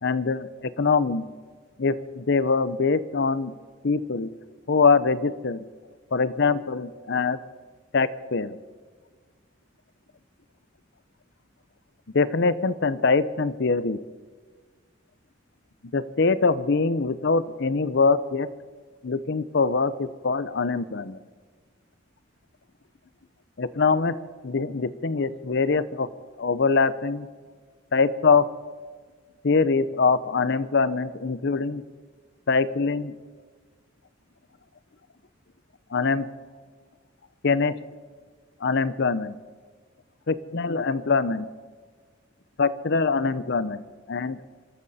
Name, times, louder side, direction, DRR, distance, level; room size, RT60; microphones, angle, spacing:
voice 1, 0.0-1.3 1.8-3.5 3.8-4.3 4.7-5.6 6.1-7.4 7.9-8.6 12.1-14.0 15.9-18.5 19.0-21.2 23.6-24.2 24.4-26.1 26.4-27.3 27.9-28.5 29.4-31.8 32.5-33.1 35.9-36.3 37.4-37.7 38.6-39.3 40.3-41.5 42.6-43.8 44.1-44.4, left 4 dB, 60° left, 15 dB, 0.7 m, -23 dB
26.0 x 13.0 x 4.2 m, 1.5 s
head